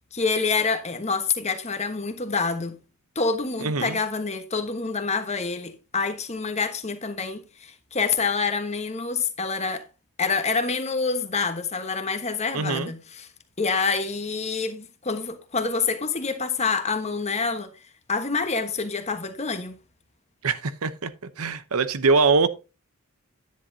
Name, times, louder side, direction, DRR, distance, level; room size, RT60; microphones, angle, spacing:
voice 1, 0.1-2.7 3.1-9.8 10.2-13.3 13.6-17.7 18.1-19.8, left 4 dB, 30° left, 1.2 m, -27 dB
voice 2, 3.6-4.0 12.5-12.9 20.4-21.1 21.4-22.5, right 4 dB, 80° right, 0.8 m, -23 dB
10.5 x 10.0 x 2.8 m
head